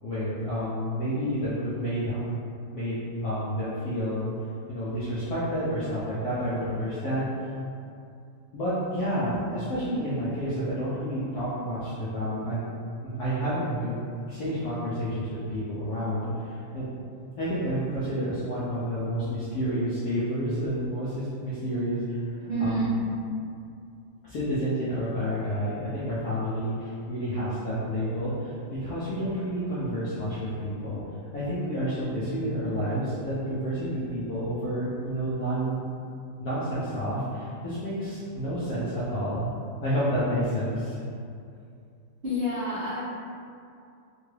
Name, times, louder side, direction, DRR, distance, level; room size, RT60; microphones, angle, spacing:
voice 1, 0.0-2.2 2.7-4.3 4.7-7.5 8.5-12.7 13.0-14.0 14.3-16.9 17.4-22.0 22.6-22.7 24.2-31.0 31.3-35.8 36.4-41.0, equal, 75° left, -11 dB, 0.8 m, -29 dB
voice 2, 22.4-22.9 42.2-43.0, right 1 dB, 80° right, -14 dB, 0.5 m, -30 dB
3.6 x 2.3 x 3.2 m, 2.5 s
omnidirectional pair, 2.4 m